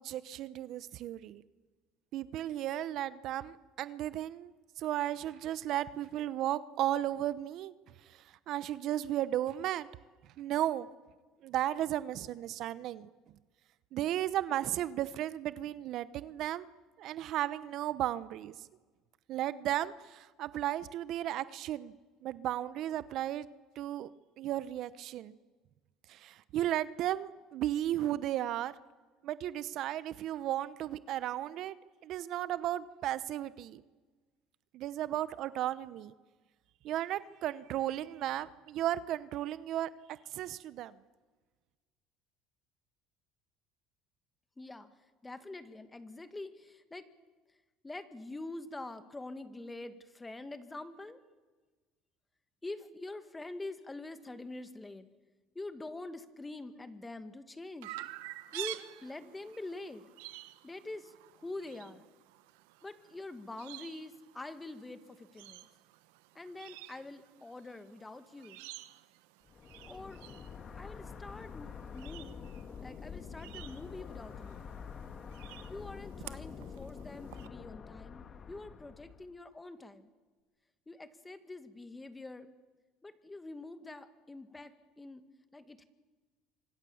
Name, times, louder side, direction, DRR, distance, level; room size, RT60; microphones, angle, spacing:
voice 1, 0.0-1.4 2.1-7.7 8.1-9.9 10.4-10.9 11.4-13.1 13.9-16.7 17.0-18.6 19.3-21.9 22.2-23.5 23.7-24.1 24.4-25.3 26.1-28.7 29.2-31.7 32.0-33.8 34.7-36.1 36.8-39.9 40.3-41.0, right 12 dB, 60° right, 16 dB, 0.9 m, -35 dB
voice 2, 44.6-44.9 45.2-47.1 47.8-51.2 52.6-55.1 55.6-57.9 58.5-60.0 60.6-62.1 62.8-65.7 66.4-68.6 69.9-70.2 70.8-72.4 72.8-74.6 75.7-80.1 80.9-82.5 83.0-85.2 85.5-85.8, left 2 dB, 15° left, 10 dB, 2.0 m, -45 dB
Chirp tweet, 57.8-77.5, right 17 dB, 90° right, 1.1 m, -50 dB
sound 1, 69.5-79.3, left 6 dB, 35° left, 1.7 m, -47 dB
26.5 x 25.5 x 7.2 m, 1.3 s
supercardioid pair, 110°, 0 cm